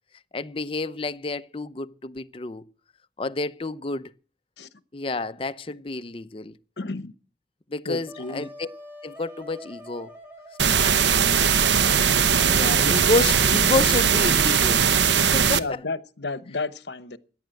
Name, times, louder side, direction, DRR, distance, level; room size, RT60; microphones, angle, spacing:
voice 1, 0.3-2.6 3.2-4.1 4.9-6.5 7.7-8.7 9.0-10.1 10.6-10.8 12.5-14.9 15.1-15.6, left 3 dB, 30° left, 0.6 m, -29 dB
voice 2, 6.8-7.1 7.9-8.5 10.8-11.0 12.0-12.1 12.6-13.0 15.5-17.2, left 3 dB, 70° left, 0.9 m, -33 dB
Wind instrument woodwind instrument, 8.1-13.6, equal, 10° right, 3.1 m, -46 dB
sound 1, 10.6-15.6, right 7 dB, 80° right, 0.8 m, -20 dB
14.5 x 10.5 x 7.7 m
head